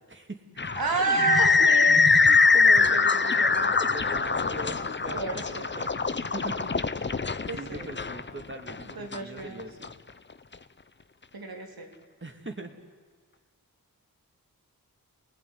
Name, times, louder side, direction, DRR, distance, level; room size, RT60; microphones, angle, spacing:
voice 1, 0.1-0.4 2.2-6.0 6.3-6.7 7.1-7.3 7.5-9.9 12.2-12.8, right 2 dB, 35° right, 4 dB, 3.0 m, -40 dB
sound 1, 0.6-9.9, left 4 dB, 30° left, 0.8 m, -23 dB
voice 2, 0.8-2.0 2.8-2.9 5.1-5.9 7.5-7.9 9.0-9.6 11.3-11.9, right 4 dB, 85° right, 2 dB, 3.6 m, -30 dB
29.5 x 20.0 x 9.8 m, 1.5 s
wide cardioid pair, 70°, 35 cm